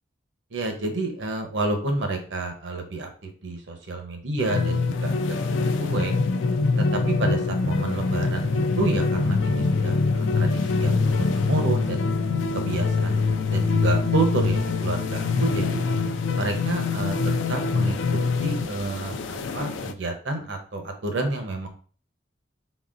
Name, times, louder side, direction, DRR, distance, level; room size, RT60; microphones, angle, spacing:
voice 1, 0.5-3.1 3.4-5.4 5.8-6.1 6.8-12.0 12.5-15.8 16.4-17.1 17.5-21.7, right 2 dB, 80° right, 4 dB, 0.8 m, -29 dB
sound 1, 4.4-19.9, left 4 dB, 90° left, 0.4 m, -24 dB
4.1 x 3.9 x 2.5 m, 0.42 s
head